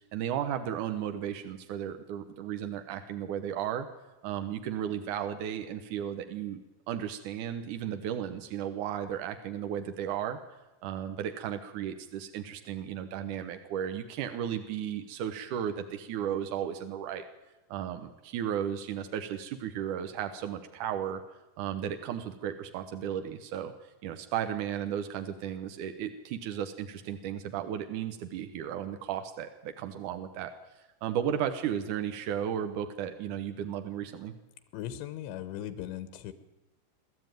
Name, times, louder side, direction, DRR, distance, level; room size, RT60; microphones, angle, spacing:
voice 1, 0.1-3.9 4.2-6.6 6.9-10.4 10.8-17.2 17.7-21.2 21.6-23.7 24.0-34.3, right 9 dB, 75° right, 7 dB, 1.9 m, -34 dB
voice 2, 34.7-36.3, left 11 dB, 85° left, 12 dB, 3.3 m, -38 dB
22.0 x 13.5 x 9.2 m, 1.0 s
omnidirectional pair, 5.1 m